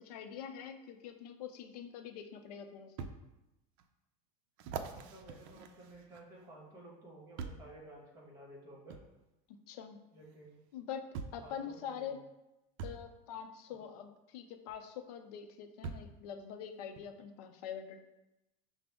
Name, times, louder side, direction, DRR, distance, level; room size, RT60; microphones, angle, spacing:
voice 1, 0.0-3.1 9.5-10.0 10.7-11.1 11.3-12.2 12.8-18.0, left 8 dB, 85° left, 7 dB, 0.5 m, -45 dB
sound 1, 1.9-2.0 3.0-3.2 3.8-3.9 4.6-6.5 7.4-7.7 8.9-9.1 10.3-10.4 11.1-11.5 12.8-13.0 14.7-14.8 15.8-16.2 17.0-17.1, right 5 dB, 65° right, 0.4 m, -43 dB
voice 2, 4.9-9.0 10.1-10.6 11.4-12.2, right 1 dB, 20° right, -2 dB, 1.2 m, -54 dB
5.8 x 2.0 x 3.5 m, 0.94 s
supercardioid pair, 145°, 20 cm